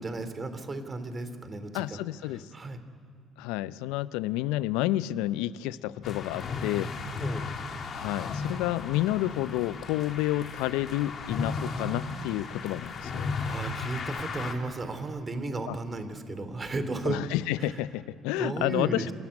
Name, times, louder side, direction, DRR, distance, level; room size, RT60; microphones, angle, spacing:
voice 1, 0.0-2.0 2.5-2.8 7.2-7.5 13.4-17.3 17.6-17.7 18.3-19.1, right 2 dB, 35° right, 10 dB, 2.7 m, -34 dB
voice 2, 1.7-2.4 3.4-6.9 7.9-13.3 15.7-15.8 17.1-19.1, left 15 dB, 75° left, 18 dB, 0.5 m, -30 dB
sound 1, 6.0-14.5, left 4 dB, 50° left, 2.8 m, -35 dB
27.0 x 13.0 x 9.7 m, 2.3 s
hypercardioid pair, 55°, 0 cm